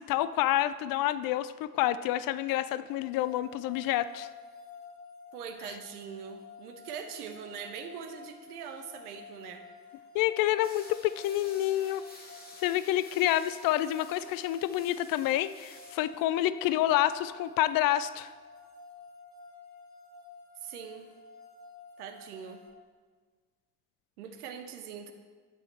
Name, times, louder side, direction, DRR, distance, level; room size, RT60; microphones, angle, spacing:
voice 1, 0.0-4.3 10.1-12.0 12.6-18.3, left 13 dB, 45° left, 14 dB, 0.5 m, -28 dB
sound 1, 2.9-22.7, left 4 dB, 80° left, 1.5 m, -51 dB
voice 2, 5.3-9.6 20.6-21.1 22.0-22.6 24.2-25.1, right 7 dB, 70° right, 7 dB, 1.1 m, -42 dB
sound 2, 10.6-16.0, left 1 dB, 20° left, 2.7 m, -52 dB
13.0 x 8.7 x 4.4 m, 1.5 s
figure-of-eight pair, 50°, 47 cm